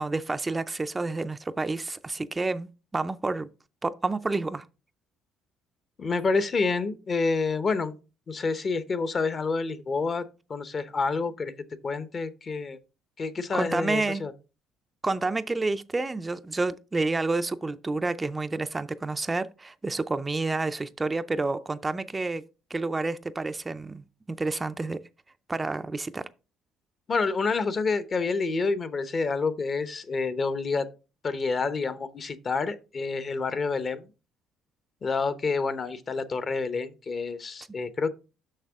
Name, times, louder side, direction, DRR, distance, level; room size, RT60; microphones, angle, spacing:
voice 1, 0.0-3.5 3.8-4.6 13.5-14.2 15.0-22.4 22.7-25.0 25.5-26.2, right 3 dB, 20° right, 0.4 m, -29 dB
voice 2, 6.0-7.9 8.3-10.2 10.5-11.5 11.8-12.8 13.2-14.3 27.1-30.9 31.2-34.1 35.0-38.1, left 4 dB, 40° left, 0.8 m, -28 dB
6.5 x 6.0 x 3.5 m
cardioid pair, 95°, 0 cm